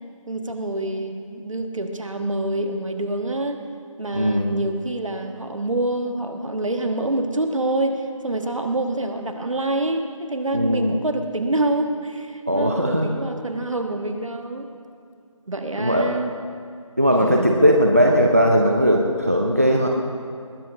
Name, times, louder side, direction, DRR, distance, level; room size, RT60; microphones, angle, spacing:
voice 1, 0.3-3.6 4.0-14.7 15.5-16.3 17.2-17.6, right 2 dB, 65° right, 5 dB, 1.4 m, -26 dB
voice 2, 4.1-4.6 10.5-11.0 12.5-13.1 15.8-16.1 17.0-19.9, equal, 25° right, 1 dB, 0.6 m, -18 dB
20.0 x 8.2 x 5.4 m, 2.3 s
figure-of-eight pair, 175°, 18 cm